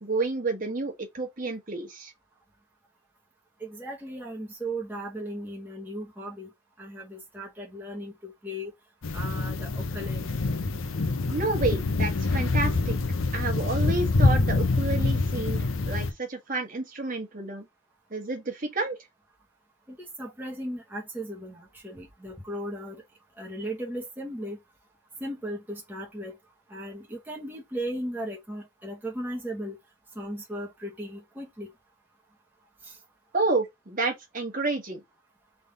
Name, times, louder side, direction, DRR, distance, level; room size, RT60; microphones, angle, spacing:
voice 1, 0.0-2.1 11.3-12.9 13.3-17.7 18.1-19.0 33.3-35.0, right 3 dB, 40° right, 1.4 m, -30 dB
voice 2, 3.6-6.5 6.8-8.7 9.1-10.3 19.9-23.0 23.4-24.6 25.2-26.4 26.7-29.8 30.1-31.7 32.8-33.0, right 1 dB, 10° right, 1.1 m, -36 dB
sound 1, 9.0-16.1, left 3 dB, 80° left, 0.7 m, -26 dB
3.6 x 3.5 x 3.8 m
head